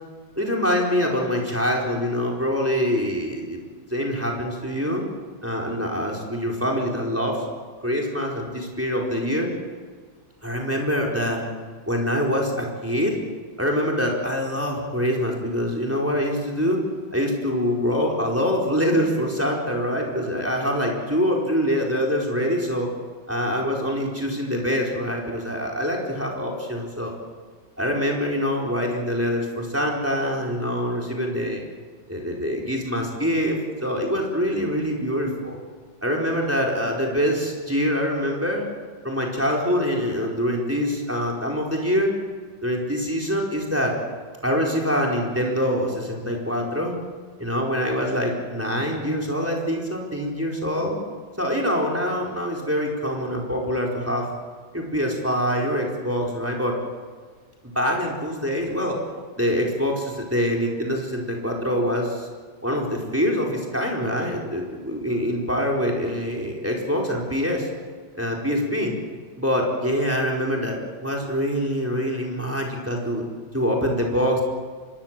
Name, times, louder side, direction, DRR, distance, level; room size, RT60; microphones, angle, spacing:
voice 1, 0.4-3.6 3.9-5.0 5.4-7.4 7.8-9.5 10.4-11.4 11.9-13.2 13.6-16.8 17.1-22.9 23.3-27.1 27.8-31.6 32.1-35.6 36.0-38.7 39.0-42.1 42.6-44.0 44.4-46.9 47.4-51.0 51.4-54.3 54.7-56.8 57.7-59.0 59.4-62.3 62.6-67.7 68.1-68.9 69.4-70.8 71.0-73.2 73.5-74.4, equal, 5° right, -1 dB, 4.5 m, -24 dB
25.5 x 21.0 x 7.6 m, 1.5 s
omnidirectional pair, 2.1 m